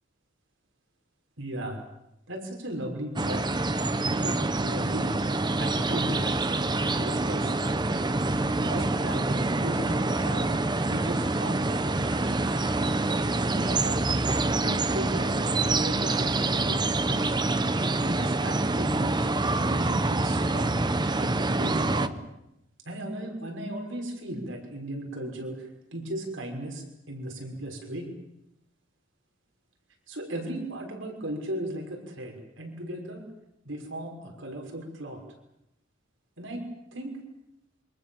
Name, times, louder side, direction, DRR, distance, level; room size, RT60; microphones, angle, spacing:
voice 1, 1.4-1.8 2.3-3.4 4.0-5.2 5.6-6.5 6.9-7.5 8.6-10.5 10.8-12.4 13.2-17.4 18.0-20.9 21.2-22.2 22.8-28.1 30.1-33.2 33.6-35.2 36.4-36.6 36.9-37.2, right 1 dB, 85° right, 2 dB, 6.0 m, -36 dB
sound 1, 3.2-22.1, right 2 dB, 25° right, 1.0 m, -26 dB
sound 2, 4.9-18.1, left 1 dB, 10° left, 3.1 m, -46 dB
27.5 x 25.0 x 7.3 m, 0.84 s
head